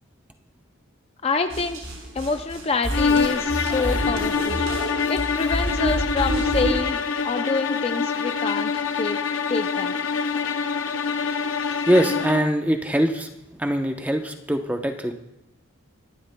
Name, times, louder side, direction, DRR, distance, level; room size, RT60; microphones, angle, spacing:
voice 1, 1.2-1.8 2.1-4.6 5.1-8.7 9.0-9.2 9.5-9.9, left 4 dB, 30° left, 7 dB, 0.4 m, -27 dB
sound 1, 1.5-6.8, right 1 dB, 85° right, 4.2 m, -28 dB
sound 2, 2.9-12.6, left 5 dB, 65° left, 0.7 m, -25 dB
voice 2, 11.9-13.3 13.6-15.1, right 1 dB, 5° right, 5 dB, 0.7 m, -22 dB
24.0 x 11.5 x 2.2 m, 0.87 s
head